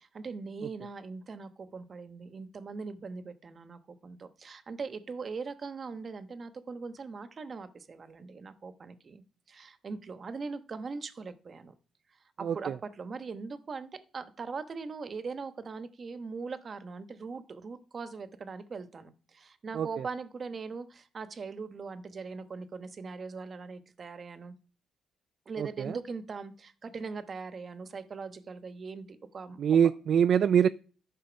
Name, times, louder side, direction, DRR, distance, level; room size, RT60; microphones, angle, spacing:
voice 1, 0.0-11.7 12.4-24.5 25.5-29.6, right 4 dB, 40° right, 11 dB, 1.1 m, -41 dB
voice 2, 25.6-26.0 29.6-30.7, right 8 dB, 60° right, 13 dB, 0.4 m, -24 dB
13.0 x 5.5 x 5.1 m, 0.41 s
cardioid pair, 90°, 0 cm